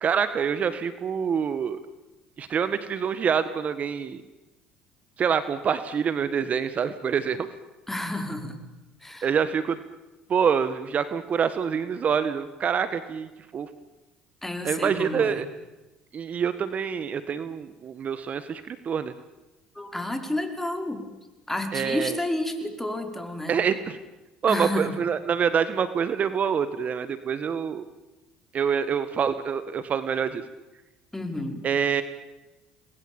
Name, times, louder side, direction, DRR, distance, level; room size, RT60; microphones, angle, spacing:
voice 1, 0.0-1.8 2.4-4.2 5.2-7.5 9.2-9.8 10.3-13.7 14.6-15.4 16.1-19.1 21.7-22.2 23.5-24.0 24.4-27.8 28.5-30.4 31.6-32.0, right 7 dB, 45° right, 13 dB, 1.7 m, -26 dB
voice 2, 7.9-8.6 9.0-9.3 14.4-15.4 19.7-21.0 21.5-23.6 24.5-25.0 31.1-31.6, left 1 dB, 10° left, 6 dB, 5.5 m, -30 dB
27.0 x 21.0 x 9.0 m, 1.1 s
supercardioid pair, 75°, 3 cm